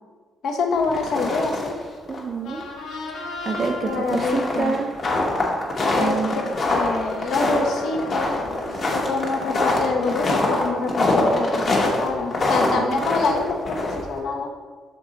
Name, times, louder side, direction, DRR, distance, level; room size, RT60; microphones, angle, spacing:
voice 1, 0.4-1.8 3.8-4.8 6.0-6.2 6.7-8.3 8.9-14.5, left 4 dB, 60° left, 3 dB, 0.8 m, -26 dB
sound 1, 0.8-1.8 2.1-2.2 2.6-2.7 3.5-14.2, left 2 dB, 35° left, 1.1 m, -24 dB
voice 2, 2.1-2.6 3.4-4.9 6.0-6.5 12.7-13.0, right 4 dB, 35° right, 5 dB, 0.4 m, -27 dB
sound 2, 2.3-9.2, left 2 dB, 80° left, 1.1 m, -38 dB
6.6 x 3.8 x 3.9 m, 1.5 s
cardioid pair, 155°, 0 cm